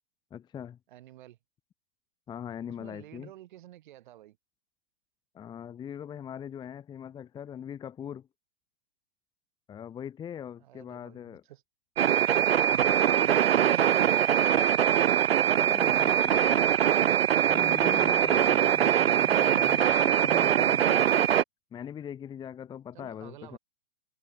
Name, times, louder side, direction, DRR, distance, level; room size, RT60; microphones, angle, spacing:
voice 1, 0.3-0.8 2.3-3.3 5.3-8.3 9.7-11.4 15.5-16.7 17.4-21.3 21.7-23.6, left 9 dB, 15° left, 0.9 m, -41 dB
voice 2, 0.9-1.4 2.8-4.4 10.6-11.6 12.4-16.8 22.9-23.6, right 14 dB, 55° right, 2.1 m, -47 dB
sound 1, 12.0-21.4, right 10 dB, 80° right, 0.5 m, -23 dB
figure-of-eight pair, 115°, 30 cm